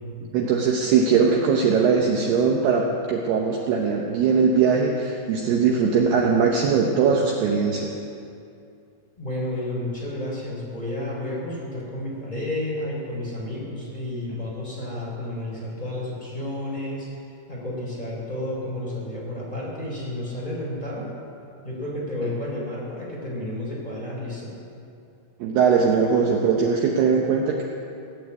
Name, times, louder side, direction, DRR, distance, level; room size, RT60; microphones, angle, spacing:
voice 1, 0.3-7.9 14.3-14.4 25.4-27.6, right 5 dB, 80° right, 0 dB, 2.4 m, -20 dB
voice 2, 9.2-17.1 17.5-21.1 21.6-24.5, left 1 dB, 10° left, -5 dB, 3.0 m, -31 dB
18.5 x 8.8 x 8.3 m, 2.6 s
omnidirectional pair, 6.0 m